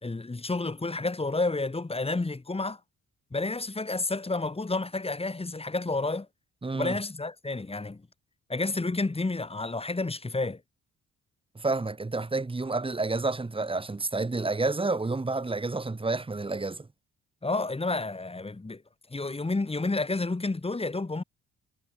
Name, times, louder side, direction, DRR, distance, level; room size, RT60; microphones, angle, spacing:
voice 1, 0.0-2.8 3.3-6.3 6.7-8.0 8.5-10.6 17.4-18.8 19.1-21.2, left 3 dB, 20° left, 5.1 m, -30 dB
voice 2, 6.6-7.0 11.6-16.9, right 3 dB, 15° right, 2.1 m, -29 dB
cardioid pair, 90°, 30 cm